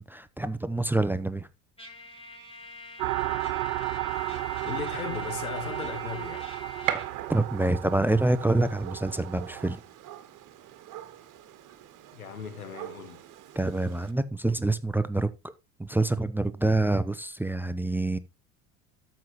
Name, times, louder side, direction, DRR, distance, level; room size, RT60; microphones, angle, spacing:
voice 1, 0.0-1.5 7.3-9.8 13.6-15.5 15.8-18.2, right 2 dB, 5° right, 0.6 m, -26 dB
Trumpet, 1.8-7.1, left 1 dB, 15° left, 3.5 m, -44 dB
sound 1, 3.0-9.8, right 17 dB, 75° right, 0.6 m, -34 dB
Gunshot gunfire, 4.1-14.1, right 11 dB, 45° right, 1.5 m, -41 dB
voice 2, 4.6-6.5 12.1-13.2, left 7 dB, 90° left, 1.5 m, -37 dB
13.5 x 5.8 x 3.0 m
hypercardioid pair, 70°, 42 cm